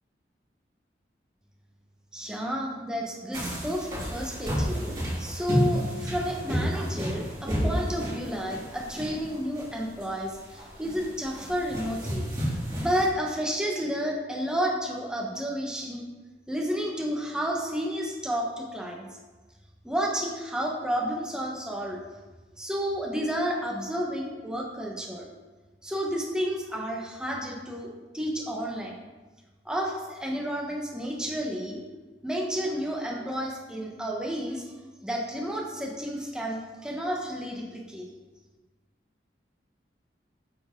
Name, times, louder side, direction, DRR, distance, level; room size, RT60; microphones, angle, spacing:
voice 1, 2.1-12.3 12.8-16.0 16.5-19.0 19.8-22.0 22.6-25.3 25.8-29.0 29.6-31.8 32.2-34.6 35.0-38.1, equal, 5° right, -1 dB, 1.1 m, -31 dB
sound 1, 3.3-13.1, equal, 20° right, 2.9 m, -31 dB
8.7 x 6.6 x 3.8 m, 1.2 s
head